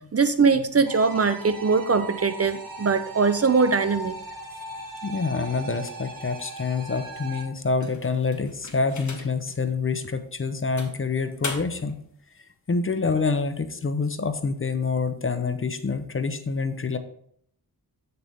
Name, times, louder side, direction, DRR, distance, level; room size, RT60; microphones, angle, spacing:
voice 1, 0.1-4.1, right 5 dB, 40° right, 11 dB, 0.6 m, -21 dB
sound 1, 0.9-7.5, right 2 dB, 60° right, 1.4 m, -39 dB
voice 2, 5.0-12.0 12.7-17.0, left 4 dB, 35° left, 9 dB, 0.7 m, -27 dB
sound 2, 7.8-9.5 10.1-10.2 10.8-12.0, left 3 dB, 50° left, 1.8 m, -38 dB
7.8 x 6.8 x 3.5 m, 0.64 s
wide cardioid pair, 105°, 38 cm